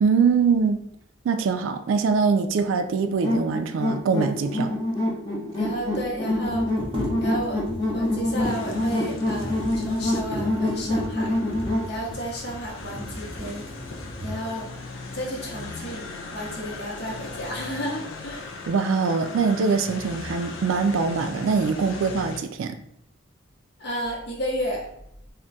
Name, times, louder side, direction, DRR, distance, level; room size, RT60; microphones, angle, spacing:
voice 1, 0.0-0.8 1.2-4.7 18.7-22.8, right 5 dB, 75° right, 8 dB, 0.3 m, -23 dB
sound 1, 3.2-11.9, left 1 dB, 20° left, 0.6 m, -26 dB
sound 2, 4.8-4.9 5.1-5.2 6.2-14.6 15.3-15.4 15.9-16.5 16.8-17.4, equal, 25° right, 0.7 m, -37 dB
voice 2, 5.6-6.7 7.2-7.6 7.9-11.4 11.9-13.7 14.2-14.7 15.1-16.0 16.3-18.5 23.8-24.9, equal, 55° left, -3 dB, 0.8 m, -32 dB
sound 3, 8.4-22.4, left 3 dB, 70° left, 0.4 m, -39 dB
2.2 x 2.1 x 3.8 m, 0.75 s
head